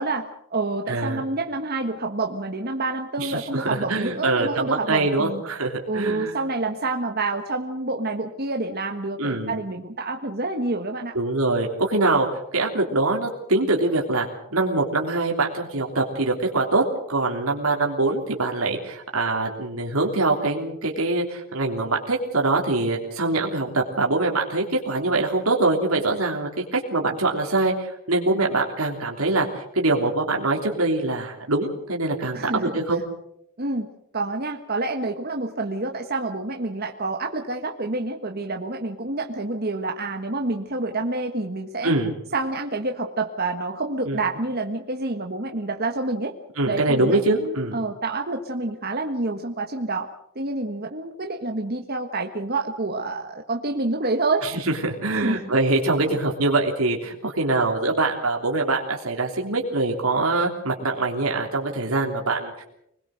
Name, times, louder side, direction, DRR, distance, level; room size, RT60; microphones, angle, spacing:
voice 1, 0.0-5.4 5.9-11.1 32.3-32.6 33.6-33.9 34.1-41.9 42.3-46.3 46.6-50.1 50.3-54.5 55.1-55.5, right 2 dB, 45° right, 3 dB, 1.5 m, -28 dB
voice 2, 0.9-1.2 3.2-6.4 9.2-9.5 11.1-12.3 12.5-33.0 41.8-42.1 44.1-44.2 46.6-47.8 54.4-54.5 54.8-62.6, right 2 dB, 80° right, 0 dB, 3.3 m, -24 dB
26.5 x 20.5 x 6.5 m, 0.76 s
head